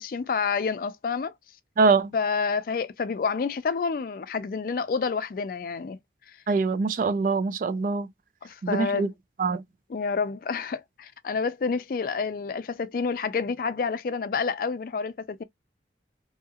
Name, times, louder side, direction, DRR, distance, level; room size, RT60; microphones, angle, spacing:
voice 1, 0.0-1.3 2.1-6.0 6.3-6.4 8.4-9.1 9.9-15.4, left 5 dB, 50° left, 0.3 m, -29 dB
voice 2, 1.8-2.1 6.5-8.1 8.6-9.1 9.4-9.6, right 4 dB, 45° right, 0.3 m, -23 dB
2.7 x 2.3 x 2.7 m
head